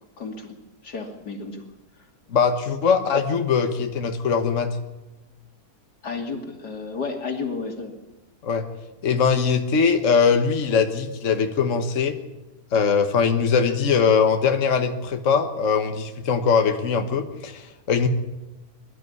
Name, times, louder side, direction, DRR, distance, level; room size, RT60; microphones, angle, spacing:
voice 1, 0.2-0.5 0.8-1.6 6.0-7.9, left 4 dB, 90° left, 4 dB, 3.2 m, -32 dB
voice 2, 2.3-4.8 8.4-8.7 9.0-12.2 12.7-18.1, left 6 dB, 50° left, 6 dB, 1.6 m, -21 dB
22.5 x 12.5 x 9.8 m, 1.1 s
omnidirectional pair, 1.7 m